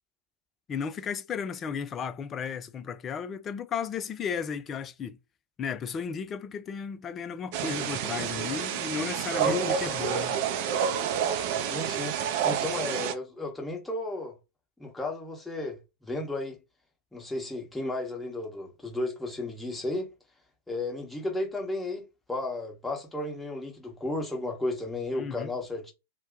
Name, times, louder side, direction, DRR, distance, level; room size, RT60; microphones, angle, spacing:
voice 1, 0.7-5.2 5.6-10.4 25.1-25.5, left 6 dB, 25° left, 0.4 m, -34 dB
sound 1, 7.5-13.1, right 8 dB, 50° right, 0.5 m, -29 dB
voice 2, 9.4-9.9 11.6-12.2 12.4-14.3 14.8-16.6 17.1-20.1 20.7-22.0 22.3-25.9, left 2 dB, 5° left, 1.1 m, -33 dB
2.8 x 2.1 x 3.5 m
figure-of-eight pair, 100°, 0 cm